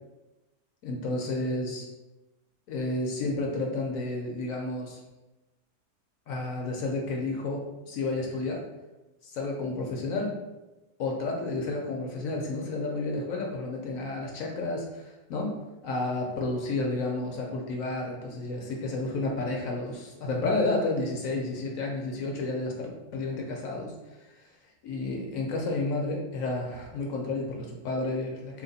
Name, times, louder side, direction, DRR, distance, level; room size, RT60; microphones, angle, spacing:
voice 1, 0.8-1.9 2.7-5.0 6.3-8.6 9.2-10.4 11.0-15.6 15.8-23.9 24.4-24.5 24.8-28.6, left 2 dB, 65° left, 0 dB, 0.9 m, -31 dB
2.9 x 2.9 x 4.0 m, 1.0 s
omnidirectional pair, 1.7 m